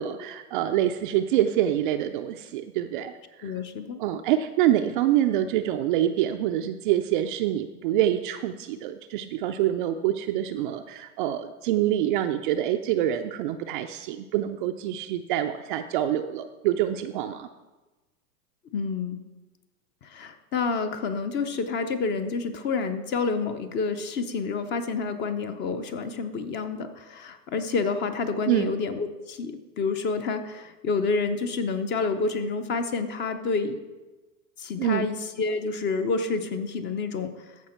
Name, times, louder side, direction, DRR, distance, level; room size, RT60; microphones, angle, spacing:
voice 1, 0.0-3.1 3.4-3.5 4.0-17.5 28.5-28.7 34.8-35.1, right 12 dB, 40° right, 7 dB, 0.4 m, -26 dB
voice 2, 3.4-4.0 18.7-19.2 20.0-33.8 34.6-37.3, left 4 dB, 25° left, 9 dB, 0.6 m, -28 dB
14.5 x 5.1 x 4.4 m, 1.1 s
hypercardioid pair, 125°, 45 cm